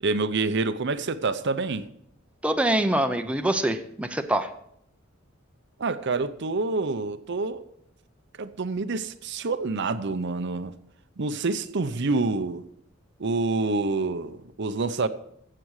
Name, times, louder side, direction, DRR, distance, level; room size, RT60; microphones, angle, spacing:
voice 1, 0.0-1.9 5.8-7.6 8.4-10.7 11.2-12.6 13.2-15.1, right 3 dB, 60° right, 0.7 m, -27 dB
voice 2, 2.4-4.5, right 1 dB, 5° right, 0.7 m, -24 dB
15.0 x 7.8 x 4.8 m
head